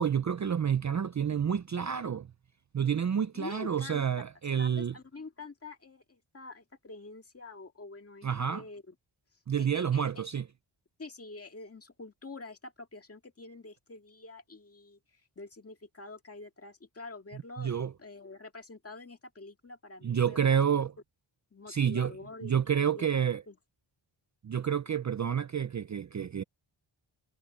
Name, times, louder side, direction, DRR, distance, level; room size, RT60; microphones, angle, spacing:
voice 1, 0.0-2.3 2.7-4.9 8.2-8.6 9.5-10.4 17.6-17.9 20.0-20.9 21.7-22.1 22.4-23.4 24.4-26.4, right 8 dB, 35° right, 0.5 m, -29 dB
voice 2, 3.3-4.0 4.6-9.0 9.6-10.2 11.0-17.7 18.0-20.9 21.5-23.2 23.5-23.6, left 3 dB, 30° left, 2.0 m, -47 dB
wide cardioid pair, 160°, 49 cm